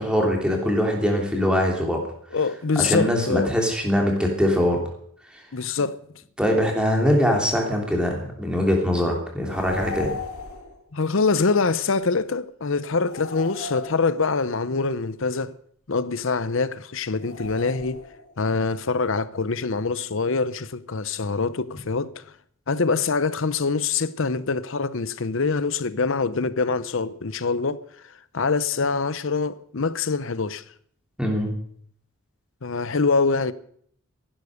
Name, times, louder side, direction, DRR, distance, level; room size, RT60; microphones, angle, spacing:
voice 1, 0.0-2.0 2.8-4.8 6.4-10.1 31.2-31.5, equal, 5° right, 3.1 m, -22 dB
voice 2, 2.3-3.5 5.5-6.0 10.9-15.5 15.9-18.0 18.4-22.2 22.7-27.8 28.3-30.6 32.6-33.5, left 4 dB, 60° left, 0.8 m, -24 dB
sound 1, 9.5-10.8 13.1-14.5 17.2-18.3, left 4 dB, 80° left, 2.2 m, -36 dB
15.0 x 11.5 x 6.5 m
head